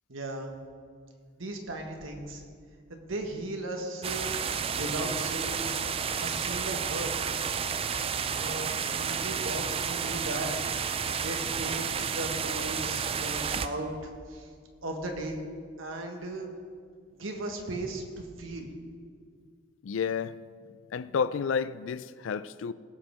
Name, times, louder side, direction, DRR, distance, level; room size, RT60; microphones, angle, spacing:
voice 1, 0.1-0.5 1.3-2.4 2.9-4.3 4.8-5.6 6.2-7.1 8.3-8.7 9.0-10.7 11.2-11.9 12.1-13.9 14.3-14.5 14.8-15.4 15.8-16.5 17.2-18.7, right 1 dB, 90° right, 1.6 m, -36 dB
sound 1, 4.0-13.7, right 6 dB, 30° right, 0.4 m, -31 dB
voice 2, 19.8-20.4 20.9-22.7, left 6 dB, 75° left, 0.4 m, -30 dB
18.0 x 7.9 x 3.5 m
head